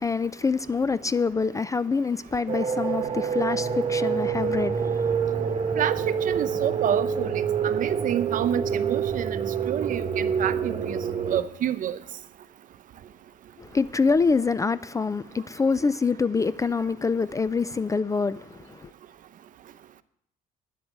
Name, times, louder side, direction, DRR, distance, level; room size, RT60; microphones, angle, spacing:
voice 1, 0.0-5.8 13.6-18.9, left 4 dB, 20° left, 0.4 m, -26 dB
sound 1, 2.5-11.4, right 6 dB, 35° right, 1.6 m, -27 dB
voice 2, 5.8-11.0 11.3-12.0, right 10 dB, 50° right, 0.7 m, -28 dB
10.0 x 7.8 x 9.4 m
cardioid pair, 110°, 17 cm